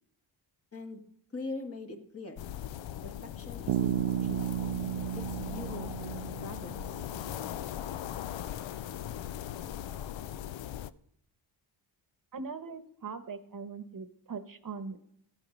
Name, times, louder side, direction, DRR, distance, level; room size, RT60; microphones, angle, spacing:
voice 1, 1.3-2.4 3.0-4.6 5.1-7.0, left 3 dB, 30° left, 4 dB, 1.6 m, -43 dB
sound 1, 2.4-10.9, left 11 dB, 70° left, 0.6 m, -39 dB
Bass guitar, 3.7-7.4, right 12 dB, 80° right, 0.6 m, -33 dB
voice 2, 12.3-15.0, right 5 dB, 45° right, 10 dB, 1.0 m, -41 dB
14.5 x 9.1 x 5.2 m, 0.70 s
cardioid pair, 105°, 46 cm